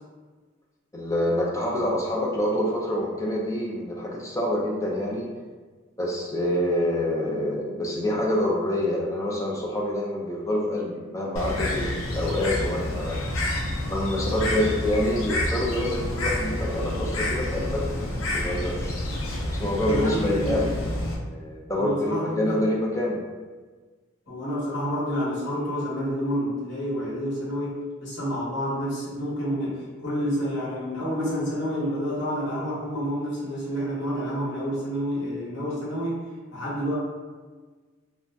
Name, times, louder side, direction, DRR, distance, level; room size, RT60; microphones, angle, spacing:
voice 1, 0.9-5.3 6.0-13.2 13.9-18.9 19.4-23.2, left 1 dB, 15° left, -3 dB, 0.4 m, -27 dB
Bird, 11.4-21.2, left 1 dB, 70° left, 0.5 m, -29 dB
voice 2, 19.8-20.7 21.8-22.6 24.3-36.2 36.5-36.9, equal, 55° left, -7 dB, 1.0 m, -29 dB
2.5 x 2.0 x 3.3 m, 1.4 s
head